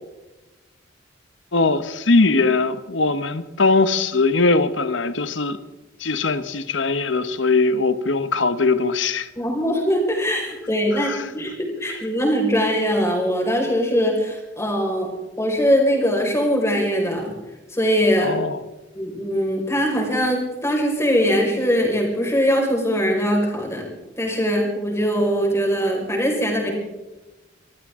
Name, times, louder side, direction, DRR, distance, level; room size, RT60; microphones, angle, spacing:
voice 1, 1.5-5.6 6.0-9.3 10.9-11.3 18.2-18.6, left 3 dB, 70° left, 1.1 m, -20 dB
voice 2, 9.3-17.3 17.7-18.3 18.9-23.9 24.2-26.7, equal, 15° left, 5.0 m, -21 dB
24.5 x 15.0 x 3.7 m
head